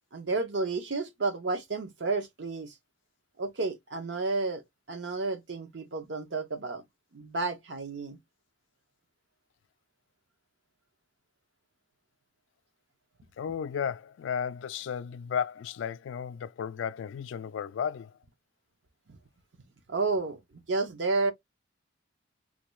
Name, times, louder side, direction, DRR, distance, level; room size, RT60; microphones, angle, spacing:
voice 1, 0.1-2.7 3.4-6.8 7.1-8.2 19.1-19.2 19.9-21.3, right 3 dB, 65° right, 0.7 m, -31 dB
voice 2, 13.4-18.1, left 7 dB, 70° left, 0.3 m, -34 dB
3.7 x 2.2 x 3.0 m
head